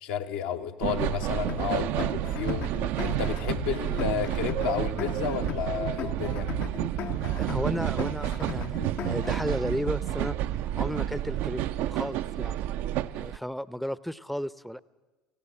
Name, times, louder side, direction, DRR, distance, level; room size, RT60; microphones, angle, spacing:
voice 1, 0.0-2.7 3.0-6.5, left 8 dB, 70° left, 6 dB, 1.2 m, -31 dB
sound 1, 0.8-13.4, right 13 dB, 60° right, 0.5 m, -30 dB
sound 2, 1.5-9.5, left 9 dB, 50° left, 0.7 m, -38 dB
voice 2, 7.3-10.4 10.8-12.6 13.1-14.8, equal, ahead, 18 dB, 0.6 m, -34 dB
18.0 x 16.5 x 8.6 m, 1.2 s
figure-of-eight pair, 65°, 4 cm